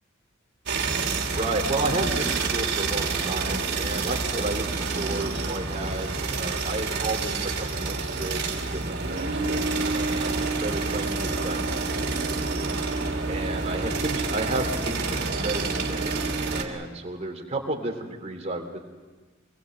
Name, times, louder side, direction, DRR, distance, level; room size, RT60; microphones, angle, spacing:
sound 1, 0.7-16.6, right 3 dB, 55° right, 3.1 m, -28 dB
voice 1, 1.3-12.3 13.3-18.8, right 2 dB, 35° right, 3 dB, 3.3 m, -32 dB
25.0 x 20.5 x 7.9 m, 1.3 s
head